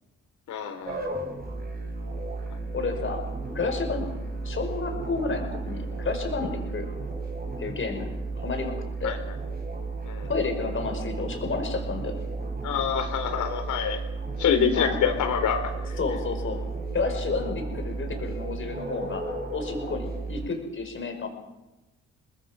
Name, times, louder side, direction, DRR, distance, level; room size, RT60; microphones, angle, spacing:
voice 1, 0.5-1.0 9.0-9.2 10.0-10.3 12.6-14.0 14.4-15.7, left 7 dB, 75° left, 8 dB, 3.6 m, -26 dB
sound 1, 0.8-20.5, right 3 dB, 30° right, 6.5 m, -34 dB
voice 2, 2.7-3.2 3.5-4.1 4.4-6.9 7.6-8.1 8.4-8.7 9.0-9.2 10.3-12.2 14.7-15.0 16.0-16.6 16.9-21.3, left 4 dB, 40° left, 4 dB, 5.4 m, -31 dB
24.0 x 20.0 x 6.3 m, 1.1 s
cardioid pair, 90°, 30 cm